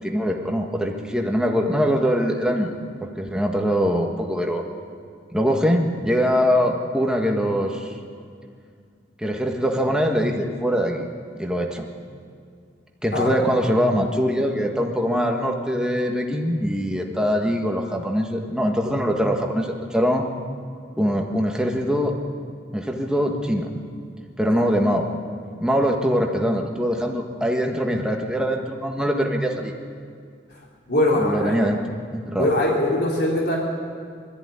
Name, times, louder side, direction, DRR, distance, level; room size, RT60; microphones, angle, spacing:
voice 1, 0.0-2.7 3.2-4.6 5.3-7.9 9.2-11.0 11.4-11.9 13.0-20.3 21.0-22.1 22.7-23.7 24.4-25.1 25.6-29.7 31.3-31.8 32.1-32.5, equal, 5° right, 2 dB, 1.6 m, -22 dB
voice 2, 30.9-31.6 32.4-33.6, left 1 dB, 60° left, -3 dB, 3.6 m, -21 dB
21.0 x 14.0 x 9.7 m, 2.2 s
head